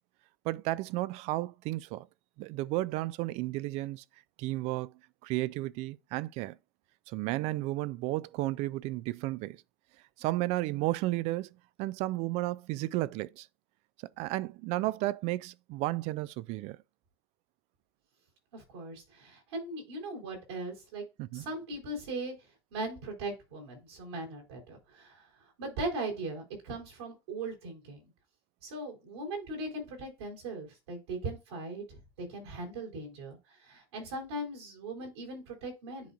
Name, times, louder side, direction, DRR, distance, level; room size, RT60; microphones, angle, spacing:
voice 1, 0.4-2.1 2.4-4.0 4.4-4.9 5.2-6.6 7.1-9.6 10.2-11.5 11.8-13.5 14.2-16.8 21.2-21.5, right 18 dB, 55° right, 0.4 m, -33 dB
voice 2, 18.5-21.0 21.3-22.3 22.7-25.3 25.6-28.1 28.6-36.1, right 2 dB, 80° right, 3.6 m, -39 dB
10.0 x 3.8 x 2.4 m
hypercardioid pair, 90°, 13 cm